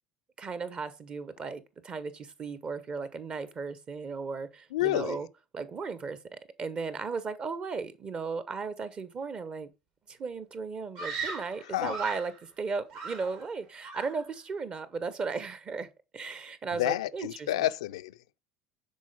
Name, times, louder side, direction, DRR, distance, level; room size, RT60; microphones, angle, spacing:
voice 1, 0.4-5.3 5.5-9.7 10.1-17.5, right 4 dB, 30° right, 1.1 m, -36 dB
voice 2, 4.7-5.2 11.6-12.0 16.7-18.4, left 15 dB, 65° left, 0.5 m, -30 dB
Screaming, 10.9-12.4 12.9-13.6 13.8-14.3, right 4 dB, 55° right, 2.8 m, -38 dB
10.5 x 4.5 x 5.3 m
figure-of-eight pair, 65°, 3 cm